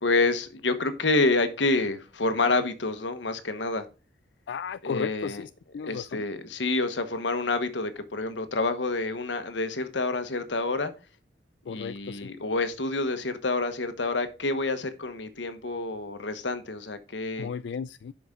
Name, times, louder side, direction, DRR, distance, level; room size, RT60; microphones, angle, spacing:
voice 1, 0.0-3.8 4.8-5.4 5.8-10.9 11.7-17.5, left 3 dB, 90° left, 1.2 m, -28 dB
voice 2, 4.5-6.3 11.7-12.3 17.4-18.1, left 6 dB, 70° left, 0.3 m, -35 dB
11.0 x 6.1 x 3.8 m
head